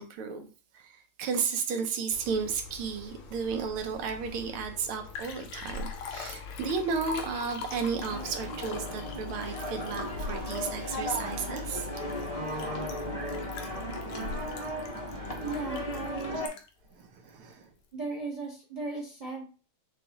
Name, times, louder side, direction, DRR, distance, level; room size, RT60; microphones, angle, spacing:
voice 1, 0.0-11.9 14.0-14.1 16.9-17.7, right 5 dB, 80° right, 5 dB, 1.6 m, -33 dB
sound 1, 2.1-16.4, left 5 dB, 70° left, 1.3 m, -45 dB
Liquid, 4.6-4.7 4.9-16.8 17.3-17.4, left 4 dB, 85° left, 1.7 m, -42 dB
sound 2, 8.1-16.5, equal, 45° left, 0.4 m, -36 dB
voice 2, 15.4-16.4 17.9-19.5, right 3 dB, 30° right, -2 dB, 0.7 m, -36 dB
6.7 x 2.3 x 2.9 m, 0.36 s
omnidirectional pair, 2.4 m